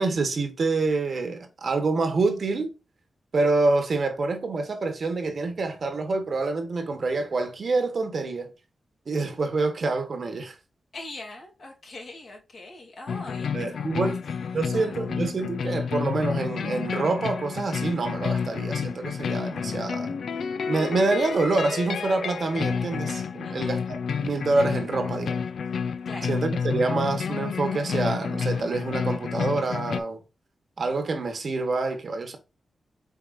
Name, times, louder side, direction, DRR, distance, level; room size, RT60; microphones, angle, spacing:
voice 1, 0.0-2.7 3.3-8.5 9.1-10.6 13.5-14.2 14.5-20.2 20.7-25.4 26.3-30.2 30.8-32.4, right 3 dB, 55° right, 1.0 m, -26 dB
voice 2, 10.9-15.1 23.4-23.7 26.0-26.3, left 2 dB, 65° left, 2.4 m, -42 dB
sound 1, 13.1-30.0, left 6 dB, 85° left, 0.4 m, -30 dB
4.8 x 4.2 x 2.5 m
wide cardioid pair, 115°, 0 cm